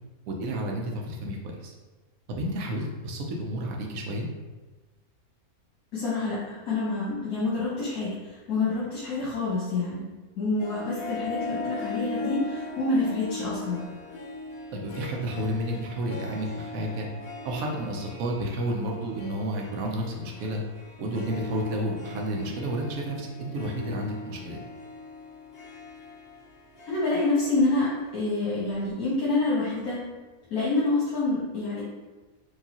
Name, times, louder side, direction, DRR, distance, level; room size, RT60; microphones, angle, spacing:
voice 1, 0.3-1.4 1.6-1.7 2.3-4.3 14.7-17.1 17.4-20.6 21.0-24.6, right 1 dB, 70° right, 0 dB, 1.1 m, -31 dB
voice 2, 5.9-10.0 10.4-13.8 26.9-30.0 30.5-31.8, left 3 dB, 75° left, -8 dB, 1.4 m, -27 dB
Harp, 10.6-28.2, left 2 dB, 55° left, 0.7 m, -39 dB
4.6 x 2.8 x 2.8 m, 1.2 s
omnidirectional pair, 1.5 m